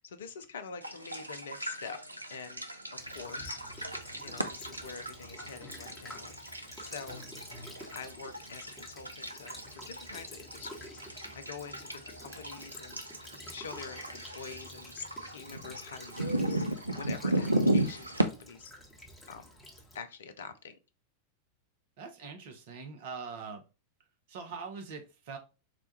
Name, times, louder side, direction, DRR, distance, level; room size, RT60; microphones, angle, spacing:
voice 1, 0.0-2.0 2.3-2.6 3.1-3.6 4.2-7.3 7.9-18.7 19.3-19.5 19.9-20.8, left 5 dB, 65° left, 0.4 m, -46 dB
sound 1, 0.8-18.3, right 1 dB, 85° right, 0.4 m, -36 dB
Child speech kid speaking / Bird vocalization bird call bird song / Stream, 3.0-20.0, left 1 dB, 10° left, 1.0 m, -50 dB
voice 2, 22.0-23.6 24.3-25.4, right 5 dB, 50° right, 0.7 m, -42 dB
4.1 x 2.2 x 2.7 m
figure-of-eight pair, 90°, 0 cm